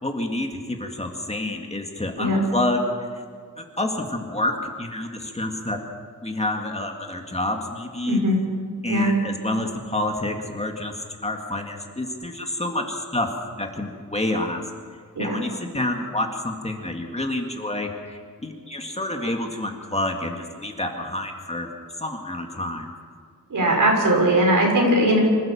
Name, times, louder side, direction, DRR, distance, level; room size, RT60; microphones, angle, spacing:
voice 1, 0.0-3.2 3.6-5.8 6.2-8.2 8.8-10.9 11.2-13.3 13.6-14.6 15.2-21.7 22.0-22.9, left 1 dB, 20° left, 2 dB, 2.0 m, -28 dB
voice 2, 8.0-8.4 8.9-9.1 15.2-15.4 23.5-25.2, right 1 dB, 70° right, 0 dB, 5.9 m, -19 dB
26.0 x 15.0 x 7.1 m, 2.1 s
wide cardioid pair, 150°, 33 cm